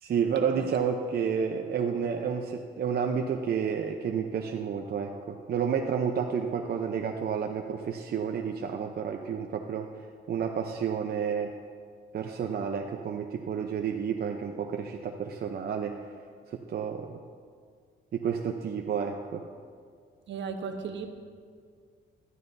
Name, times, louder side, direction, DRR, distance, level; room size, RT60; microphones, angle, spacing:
voice 1, 0.0-9.9 10.3-11.5 12.1-16.0 16.5-17.2 18.1-19.5, right 7 dB, 50° right, 3 dB, 0.7 m, -30 dB
voice 2, 20.3-21.1, right 5 dB, 65° right, 5 dB, 1.1 m, -35 dB
15.5 x 12.5 x 2.7 m, 2.1 s
cardioid pair, 90°, 20 cm